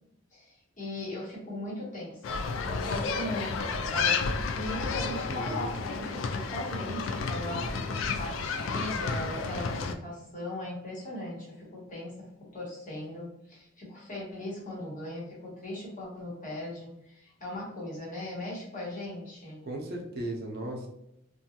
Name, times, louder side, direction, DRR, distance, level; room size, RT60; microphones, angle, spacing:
voice 1, 0.3-2.4 2.7-7.8 8.2-19.6, left 1 dB, 40° left, -5 dB, 1.1 m, -38 dB
sound 1, 2.2-9.9, left 4 dB, 75° left, 0.3 m, -31 dB
voice 2, 5.1-5.7 7.5-8.0 19.6-20.9, right 1 dB, 55° right, 1 dB, 0.6 m, -37 dB
2.6 x 2.3 x 2.8 m, 0.80 s
head